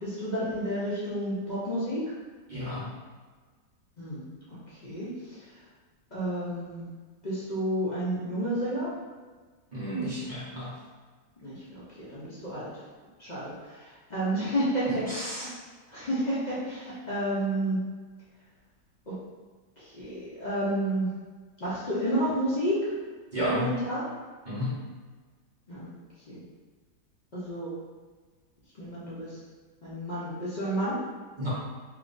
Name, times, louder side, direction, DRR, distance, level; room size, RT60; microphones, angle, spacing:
voice 1, 0.0-2.1 4.0-5.5 6.1-6.8 7.2-8.9 11.4-11.6 12.0-12.8 13.2-15.5 15.9-17.8 19.1-19.2 19.8-21.1 21.6-22.9 23.5-24.0 25.7-25.9 26.3-26.4 27.3-27.7 28.8-29.4 29.8-31.0, right 1 dB, 45° left, -10 dB, 0.5 m, -31 dB
voice 2, 2.5-2.9 9.7-10.7 14.9-15.5 23.3-23.8 24.5-24.8 31.4-31.5, equal, 40° right, -10 dB, 0.7 m, -32 dB
3.4 x 2.9 x 2.5 m, 1.5 s
omnidirectional pair, 1.8 m